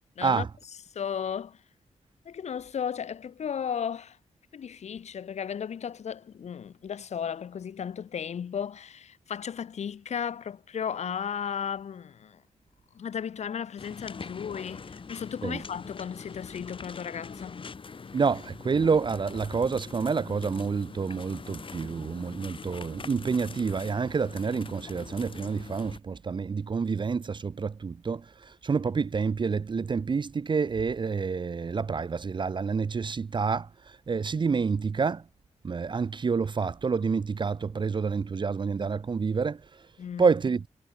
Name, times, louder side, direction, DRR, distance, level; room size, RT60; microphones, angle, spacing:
voice 1, 0.9-1.6 2.2-4.2 4.5-12.4 12.9-17.6 40.0-40.2, left 8 dB, 65° left, 0.9 m, -35 dB
sound 1, 13.8-26.0, left 5 dB, 45° left, 6.8 m, -43 dB
voice 2, 18.1-35.2 35.6-39.9 40.2-40.7, right 5 dB, 40° right, 0.8 m, -28 dB
wide cardioid pair, 120°, 12 cm